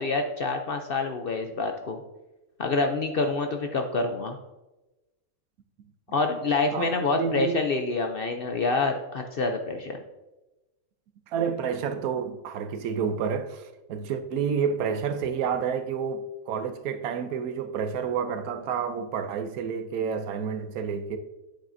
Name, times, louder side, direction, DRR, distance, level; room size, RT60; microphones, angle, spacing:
voice 1, 0.0-2.0 2.6-4.4 6.1-10.0, left 3 dB, 55° left, 0.6 m, -27 dB
voice 2, 6.7-7.6 11.3-21.2, right 6 dB, 85° right, 1.2 m, -29 dB
8.9 x 7.4 x 2.6 m
omnidirectional pair, 1.5 m